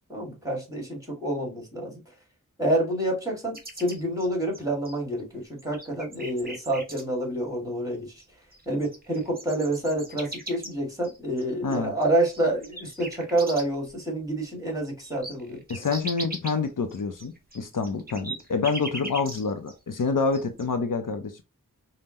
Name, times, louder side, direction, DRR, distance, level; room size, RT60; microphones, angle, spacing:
voice 1, 0.1-2.0 2.6-8.2 8.7-15.6, right 1 dB, 10° right, 1.9 m, -28 dB
sound 1, 3.5-5.2 5.6-7.0 8.2-8.3 8.5-13.9 14.3-14.4 14.7-19.7 20.0-20.7, right 2 dB, 25° right, 1.1 m, -39 dB
voice 2, 11.6-11.9 15.7-21.4, left 4 dB, 65° left, 0.6 m, -27 dB
5.3 x 2.1 x 2.8 m
wide cardioid pair, 60°, 34 cm